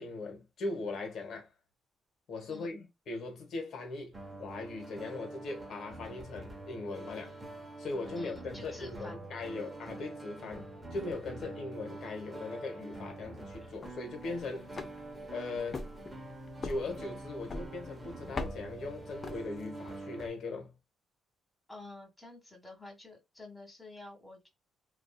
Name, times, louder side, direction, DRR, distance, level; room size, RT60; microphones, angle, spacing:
voice 1, 0.0-1.5 2.3-7.4 7.8-14.8 15.3-15.9 16.6-20.7, left 3 dB, 65° left, 1.1 m, -39 dB
sound 1, 4.1-20.3, right 2 dB, 20° right, 0.8 m, -46 dB
voice 2, 8.1-9.3 21.7-24.5, left 2 dB, 10° left, 1.5 m, -49 dB
sound 2, 13.6-19.9, left 3 dB, 35° left, 0.5 m, -44 dB
2.6 x 2.4 x 2.2 m
cardioid pair, 90°, 0 cm